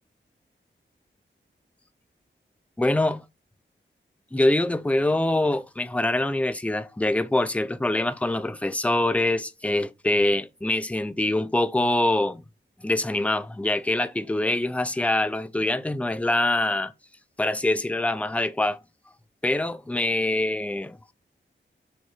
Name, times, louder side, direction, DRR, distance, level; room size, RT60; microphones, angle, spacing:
voice 1, 2.8-3.2 4.3-12.4 12.8-16.9 17.4-18.8 19.4-21.0, left 1 dB, 5° left, 0.5 m, -24 dB
6.0 x 3.0 x 5.7 m
wide cardioid pair, 95°, 20 cm